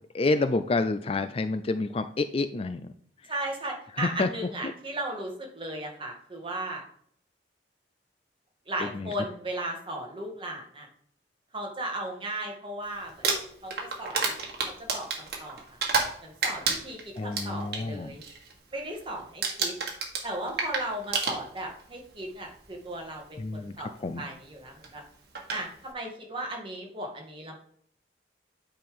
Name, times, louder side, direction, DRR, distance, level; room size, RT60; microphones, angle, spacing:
voice 1, 0.1-2.9 4.0-4.3 4.6-4.7 8.9-9.1 17.2-18.1 23.4-24.2, left 3 dB, 30° left, 11 dB, 0.4 m, -28 dB
voice 2, 3.3-6.8 8.7-10.9 11.5-13.3 13.6-14.3 14.6-15.8 16.2-18.2 18.7-19.7 20.2-25.0 25.5-27.6, right 1 dB, 30° right, 0 dB, 1.8 m, -36 dB
Crumpling crinkling, 13.1-16.2 16.4-17.8 18.2-18.5 18.8-19.1 19.4-21.8 22.7-22.8 24.8-24.9 25.3-25.6, right 4 dB, 60° right, 1.7 m, -29 dB
9.3 x 3.8 x 5.2 m, 0.64 s
head